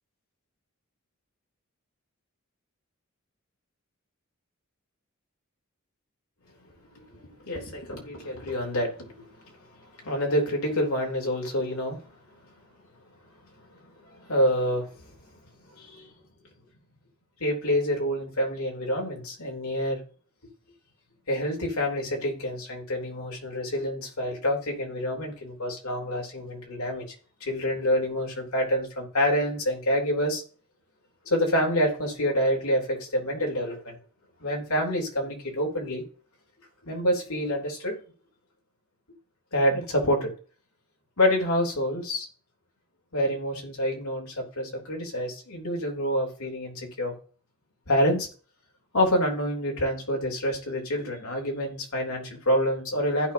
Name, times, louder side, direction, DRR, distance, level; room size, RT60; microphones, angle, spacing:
voice 1, 7.4-12.0 14.1-15.0 15.7-16.1 17.4-20.0 21.3-27.1 27.4-30.4 31.3-34.0 34.4-36.0 36.8-38.0 39.5-40.3 41.2-42.3 43.1-47.1 47.9-48.3 48.9-53.3, equal, 85° left, 0 dB, 3.5 m, -27 dB
15.5 x 5.9 x 2.9 m, 0.40 s
head